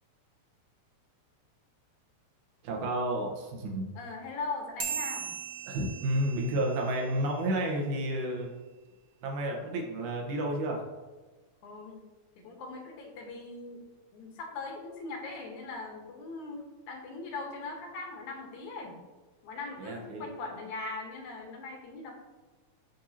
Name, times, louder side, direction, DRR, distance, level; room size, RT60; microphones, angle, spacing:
voice 1, 2.6-3.9 5.7-8.5 9.2-10.8 19.8-20.2, right 1 dB, 80° right, 1 dB, 2.6 m, -31 dB
voice 2, 4.0-5.3 11.6-12.0 12.4-13.8 14.1-19.0 19.4-22.1, left 3 dB, 80° left, 2 dB, 2.6 m, -40 dB
sound 1, 4.8-7.6, right 6 dB, 60° right, 0.9 m, -39 dB
12.0 x 4.0 x 2.8 m, 1.2 s
omnidirectional pair, 3.4 m